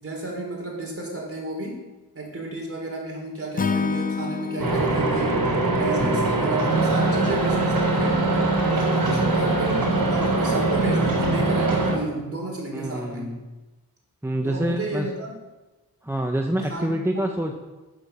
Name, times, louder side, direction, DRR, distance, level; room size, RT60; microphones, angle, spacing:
voice 1, 0.0-1.9 2.1-8.3 8.6-13.3 14.4-15.3 16.7-16.9, right 2 dB, 35° right, -1 dB, 4.0 m, -31 dB
Acoustic guitar / Strum, 3.6-6.8, left 5 dB, 25° left, 0.5 m, -30 dB
sound 1, 4.6-11.9, right 2 dB, 70° right, 3.7 m, -22 dB
voice 2, 6.0-6.4 9.0-9.5 12.7-13.4 14.2-15.1 16.0-17.5, right 1 dB, 5° right, 3 dB, 1.0 m, -27 dB
9.8 x 6.9 x 6.9 m, 1.1 s
cardioid pair, 70°, 37 cm